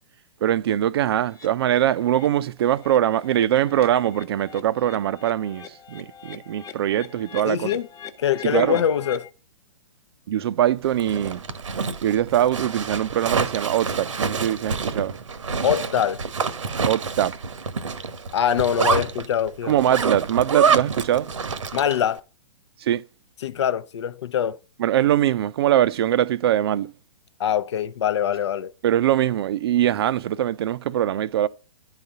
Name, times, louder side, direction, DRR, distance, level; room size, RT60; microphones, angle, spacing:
voice 1, 0.4-7.7 8.4-8.8 10.3-11.4 12.0-15.2 16.8-17.4 19.6-21.3 22.8-23.0 24.8-26.9 28.8-31.5, right 11 dB, 50° right, 0.6 m, -22 dB
sound 1, 1.3-1.5 1.9-2.3 2.6-9.3, left 7 dB, 20° left, 1.0 m, -43 dB
voice 2, 7.5-7.9 8.2-9.3 15.6-16.2 18.3-19.8 21.7-22.2 23.4-24.6 27.4-28.7, left 9 dB, 55° left, 0.6 m, -23 dB
Zipper (clothing), 10.9-22.1, right 5 dB, 70° right, 1.0 m, -27 dB
10.5 x 4.1 x 6.7 m
figure-of-eight pair, 120°, 17 cm